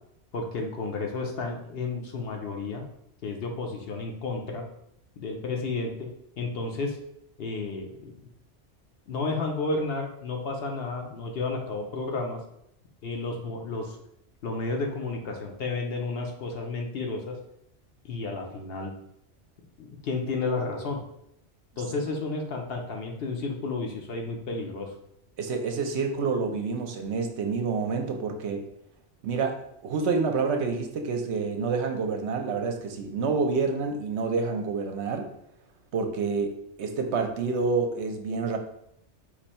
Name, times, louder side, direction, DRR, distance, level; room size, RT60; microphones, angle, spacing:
voice 1, 0.3-2.8 3.2-4.6 5.2-6.1 6.4-7.0 7.4-8.2 9.1-12.4 13.0-14.0 14.4-17.4 18.0-18.9 19.8-21.0 21.8-24.9, left 3 dB, 60° left, 1 dB, 0.9 m, -32 dB
voice 2, 25.4-28.6 29.2-35.3 35.9-38.6, right 4 dB, 70° right, 4 dB, 0.9 m, -28 dB
4.4 x 2.6 x 4.2 m, 0.77 s
omnidirectional pair, 1.2 m